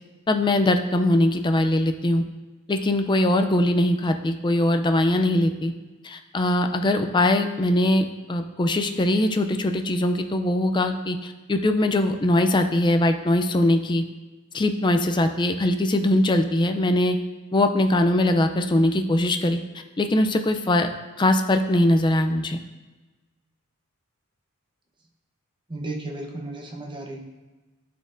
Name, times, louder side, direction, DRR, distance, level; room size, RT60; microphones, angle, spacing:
voice 1, 0.3-2.2 2.7-5.7 6.0-14.0 14.5-17.2 17.5-19.6 20.0-20.9 21.2-22.6, left 1 dB, 20° left, 6 dB, 0.4 m, -21 dB
voice 2, 25.7-27.2, right 2 dB, 20° right, 0 dB, 0.8 m, -34 dB
12.0 x 4.3 x 2.5 m, 1.2 s
head